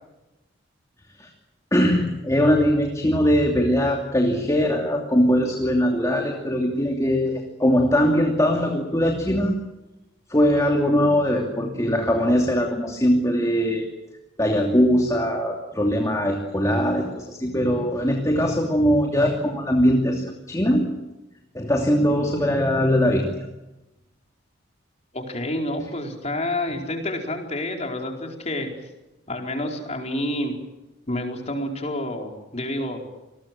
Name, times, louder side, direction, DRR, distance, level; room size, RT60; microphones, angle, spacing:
voice 1, 1.7-9.5 10.3-13.9 14.4-20.8 21.5-23.5, equal, 15° left, 1 dB, 2.8 m, -21 dB
voice 2, 25.1-28.7 29.3-30.5 31.1-33.0, left 1 dB, 35° left, 2 dB, 4.5 m, -28 dB
27.5 x 21.0 x 7.5 m, 0.99 s
head